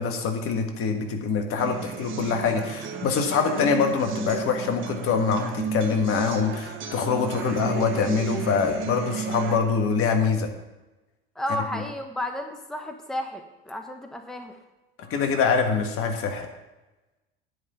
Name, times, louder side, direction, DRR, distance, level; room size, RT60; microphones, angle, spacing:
voice 1, 0.0-10.5 15.1-16.5, left 5 dB, 50° left, 5 dB, 1.7 m, -24 dB
sound 1, 1.6-9.6, right 7 dB, 40° right, 1.6 m, -33 dB
voice 2, 11.3-14.6, left 1 dB, ahead, 5 dB, 1.1 m, -32 dB
9.7 x 5.4 x 8.2 m, 1.1 s
hypercardioid pair, 80°, 29 cm